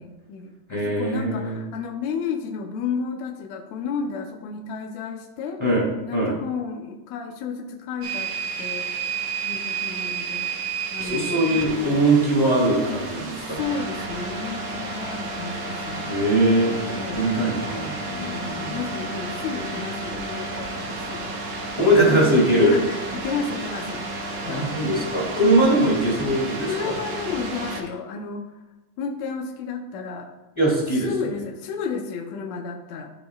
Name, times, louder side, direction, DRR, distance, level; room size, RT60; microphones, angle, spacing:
voice 1, 0.0-5.6 6.0-8.3 8.6-8.9 9.4-10.5 10.9-12.1 12.8-13.0 13.4-16.1 16.9-17.5 18.1-21.3 21.9-24.1 24.4-24.8 25.6-25.9 26.6-28.5 29.0-30.3 30.9-33.1, left 5 dB, 75° left, 3 dB, 2.0 m, -32 dB
voice 2, 0.7-1.6 5.6-5.9 6.1-6.3 11.0-13.6 16.1-18.8 21.7-22.8 24.4-26.9 30.5-31.1, right 1 dB, 10° left, -5 dB, 1.9 m, -21 dB
sound 1, 8.0-27.8, right 3 dB, 80° right, 2.4 m, -31 dB
14.5 x 4.9 x 2.4 m, 1.1 s
omnidirectional pair, 3.5 m